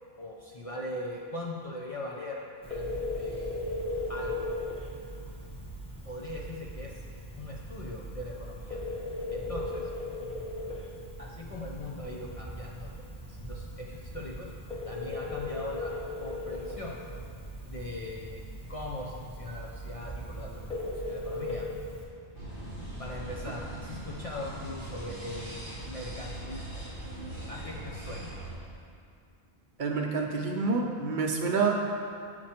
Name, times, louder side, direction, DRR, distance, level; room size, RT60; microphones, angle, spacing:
voice 1, 0.2-3.5 4.1-4.5 6.0-7.0 7.4-8.8 9.3-9.9 11.2-14.5 14.8-15.9 16.2-17.0 17.7-21.7 23.0-26.8 27.4-28.3, left 1 dB, 40° left, -3 dB, 0.6 m, -40 dB
Telephone, 2.6-22.0, left 1 dB, 5° left, 0.9 m, -38 dB
sound 1, 22.3-28.5, right 1 dB, 60° left, 1.8 m, -40 dB
voice 2, 29.8-31.9, right 4 dB, 55° right, 1 dB, 0.8 m, -28 dB
7.4 x 4.5 x 4.3 m, 2.4 s
omnidirectional pair, 1.0 m